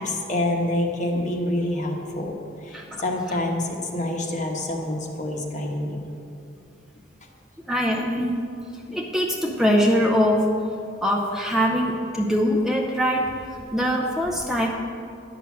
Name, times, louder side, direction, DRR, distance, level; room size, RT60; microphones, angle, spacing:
voice 1, 0.0-2.3 2.6-6.0 8.9-9.0, left 1 dB, 40° left, 2 dB, 1.2 m, -27 dB
voice 2, 7.7-8.4 8.9-10.5 11.0-13.3 13.7-14.7, equal, ahead, -1 dB, 0.7 m, -22 dB
11.0 x 6.1 x 7.2 m, 2.5 s
head